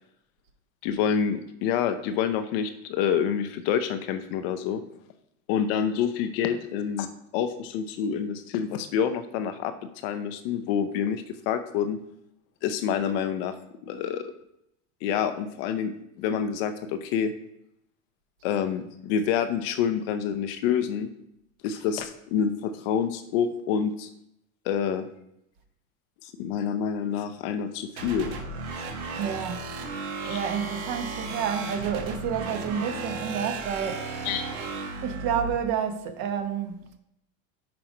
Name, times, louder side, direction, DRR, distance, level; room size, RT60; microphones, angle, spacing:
voice 1, 0.8-4.8 5.5-7.1 7.3-9.7 10.0-12.0 12.6-13.5 13.8-14.3 15.0-15.9 16.2-17.3 18.4-21.1 21.6-24.1 24.6-25.0 26.2-28.4 30.3-30.4 34.2-34.4, left 8 dB, 45° left, 0.6 m, -27 dB
sound 1, 28.0-35.5, right 3 dB, 90° right, 1.8 m, -35 dB
voice 2, 29.1-29.7 30.2-34.1 35.0-37.0, right 8 dB, 40° right, 1.1 m, -30 dB
5.9 x 5.2 x 4.9 m
supercardioid pair, 150°, 41 cm